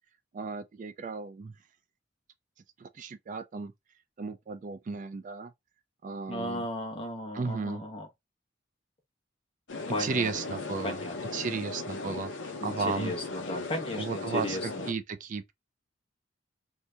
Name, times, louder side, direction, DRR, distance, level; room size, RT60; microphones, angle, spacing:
voice 1, 0.3-1.5 2.8-3.7 4.2-5.5 6.0-6.7 7.3-7.8 10.0-11.0 11.3-13.1 14.0-15.5, right 5 dB, 45° right, 0.4 m, -34 dB
voice 2, 6.3-8.1 9.9-10.3 10.8-11.1 12.6-14.9, left 1 dB, 30° left, 1.1 m, -35 dB
sound 1, 9.7-14.9, left 3 dB, 75° left, 0.7 m, -37 dB
2.8 x 2.6 x 3.3 m
head